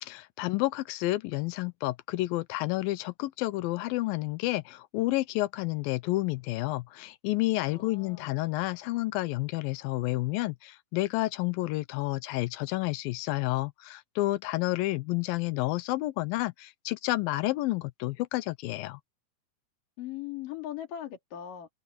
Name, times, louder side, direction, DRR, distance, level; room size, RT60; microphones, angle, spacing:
voice 1, 0.0-19.0, left 19 dB, 80° left, 2.4 m, -30 dB
voice 2, 7.7-8.3 20.0-21.7, left 11 dB, 65° left, 4.4 m, -39 dB
omnidirectional pair, 4.2 m